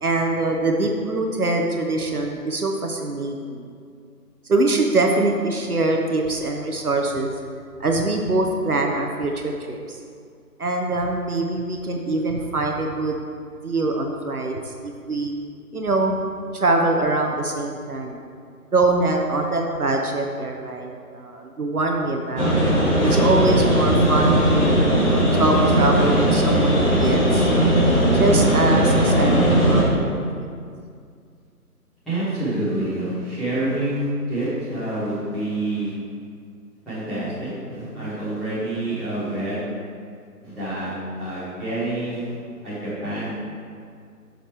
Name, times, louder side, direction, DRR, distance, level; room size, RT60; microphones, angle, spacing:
voice 1, 0.0-3.7 4.5-7.3 7.8-10.0 10.6-13.2 13.6-15.3 15.7-16.2 16.5-18.2 18.7-22.6 23.0-27.7 28.1-30.1 30.4-30.5 38.0-38.1, right 2 dB, 65° right, 2 dB, 1.0 m, -23 dB
sound 1, 22.4-29.8, right 1 dB, 45° left, 2.3 m, -18 dB
voice 2, 32.1-35.9 36.8-39.6 40.4-42.3 42.6-43.3, right 1 dB, ahead, -19 dB, 2.1 m, -27 dB
10.5 x 6.4 x 3.4 m, 2.2 s
figure-of-eight pair, 150°, 47 cm